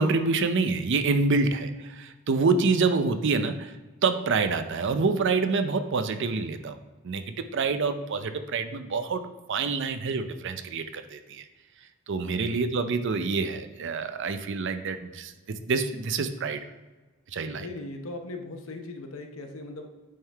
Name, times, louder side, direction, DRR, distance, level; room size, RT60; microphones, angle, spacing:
voice 1, 0.0-3.7 4.0-6.8 7.0-9.2 9.5-11.4 12.1-15.3 15.6-16.6 17.3-17.7, right 4 dB, 55° right, 9 dB, 0.5 m, -26 dB
voice 2, 17.6-19.9, left 2 dB, 65° left, 4 dB, 0.8 m, -39 dB
8.5 x 3.7 x 4.5 m, 1.2 s
head